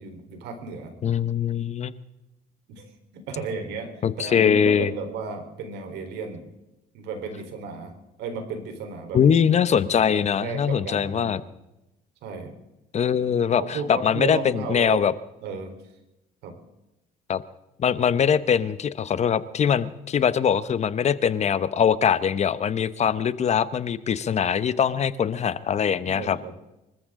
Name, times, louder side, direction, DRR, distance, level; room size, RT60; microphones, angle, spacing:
voice 1, 0.0-0.9 2.7-2.9 3.3-3.9 4.2-6.4 6.9-7.9 8.2-9.2 9.7-10.0 10.4-11.4 12.2-12.5 13.6-15.0 15.4-15.7 16.4-16.5 26.1-26.5, right 5 dB, 85° right, 5 dB, 4.0 m, -33 dB
voice 2, 1.0-1.9 4.0-4.9 9.1-11.4 12.9-15.1 17.3-17.4 17.8-26.4, left 8 dB, 40° left, 15 dB, 0.9 m, -22 dB
25.5 x 14.0 x 3.8 m, 0.94 s
cardioid pair, 110°, 17 cm